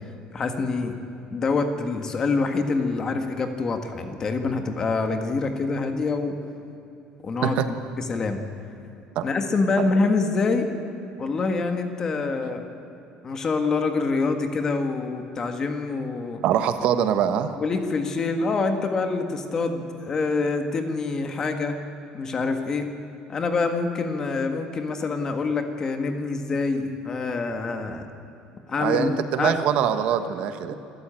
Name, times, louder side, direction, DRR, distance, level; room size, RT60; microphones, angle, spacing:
voice 1, 0.3-0.9 1.3-6.4 7.2-7.6 8.0-8.4 9.2-10.7 11.2-12.7 13.2-16.4 17.6-21.8 22.1-22.9 23.3-28.1 28.7-29.1 29.4-29.6 30.7-30.8, left 4 dB, 25° left, 6 dB, 1.6 m, -26 dB
voice 2, 16.4-17.5 28.8-30.7, right 9 dB, 55° right, 9 dB, 1.2 m, -23 dB
26.5 x 13.5 x 9.0 m, 2.8 s
cardioid pair, 170°, 2 cm